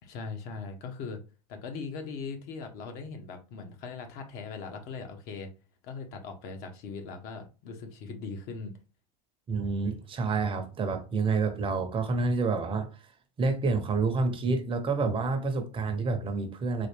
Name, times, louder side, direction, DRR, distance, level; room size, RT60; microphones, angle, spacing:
voice 1, 0.0-1.2 1.5-5.5 5.8-8.8, left 4 dB, 60° left, 1.1 m, -40 dB
voice 2, 9.5-12.9 13.4-16.9, right 4 dB, 30° right, 0.8 m, -28 dB
4.0 x 2.4 x 3.4 m
supercardioid pair, 110°, 18 cm